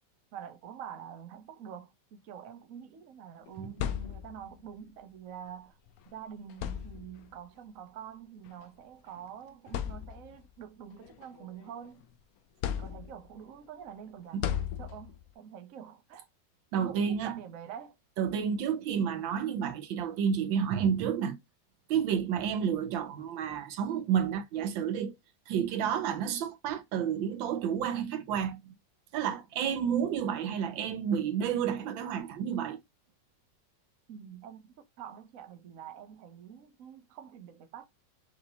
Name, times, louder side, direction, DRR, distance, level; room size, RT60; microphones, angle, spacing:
voice 1, 0.3-5.8 6.1-12.1 12.7-16.3 16.8-18.0 34.1-37.9, right 8 dB, 55° right, 1.0 m, -46 dB
sound 1, 3.5-4.6 5.9-6.0 6.5-7.4 8.5-8.6 9.2-9.3 9.7-10.5 11.0-12.0 12.6-13.4 14.4-15.3, left 10 dB, 75° left, 0.8 m, -36 dB
voice 2, 16.7-17.3 18.2-21.4 21.9-25.1 25.5-28.7 29.1-32.8, right 8 dB, 85° right, 1.5 m, -30 dB
5.7 x 2.7 x 2.7 m
omnidirectional pair, 2.0 m